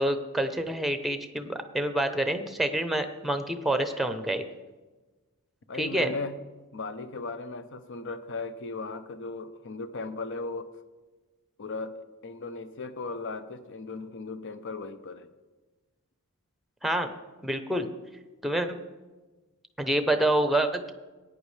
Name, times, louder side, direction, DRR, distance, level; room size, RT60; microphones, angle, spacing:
voice 1, 0.0-4.4 5.8-6.1 16.8-17.1 17.4-17.9 18.4-18.8 19.8-20.9, right 1 dB, ahead, 8 dB, 0.7 m, -27 dB
voice 2, 5.7-6.4 6.7-10.7 11.6-15.3, left 3 dB, 60° left, 11 dB, 0.7 m, -37 dB
17.0 x 9.5 x 3.3 m, 1.2 s
head